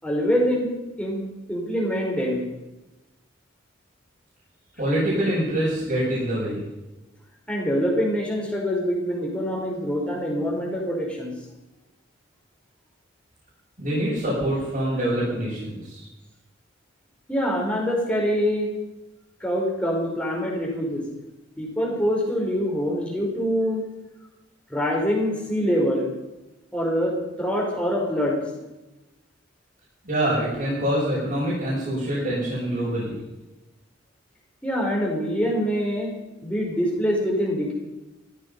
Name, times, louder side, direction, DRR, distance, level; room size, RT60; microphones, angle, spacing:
voice 1, 0.0-0.7 1.0-1.2 1.5-2.5 7.5-11.3 17.3-18.7 19.4-21.0 21.6-23.8 24.7-26.1 26.7-28.4 34.6-36.1 36.4-37.7, equal, 5° left, -2 dB, 4.7 m, -24 dB
voice 2, 4.8-6.6 13.8-16.0 30.0-33.2, right 1 dB, 45° right, -9 dB, 6.9 m, -25 dB
17.0 x 14.0 x 5.5 m, 1.0 s
head